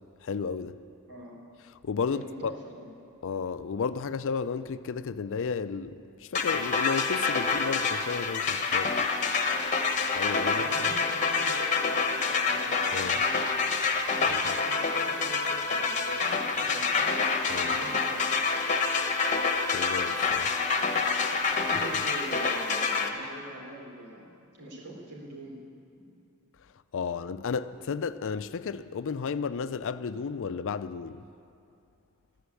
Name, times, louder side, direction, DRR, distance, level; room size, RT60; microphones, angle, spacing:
voice 1, 0.2-0.7 1.8-2.5 3.2-9.0 10.1-11.0 12.9-13.2 14.3-14.5 17.5-17.8 19.7-20.5 26.9-31.3, left 5 dB, 60° left, 0.5 m, -33 dB
voice 2, 2.1-2.9 10.5-13.7 14.1-17.1 17.6-18.2 21.6-25.6 26.0-26.2, right 1 dB, 85° right, 4.1 m, -44 dB
sound 1, 6.3-23.1, left 4 dB, 35° left, 1.0 m, -27 dB
13.0 x 11.5 x 8.4 m
head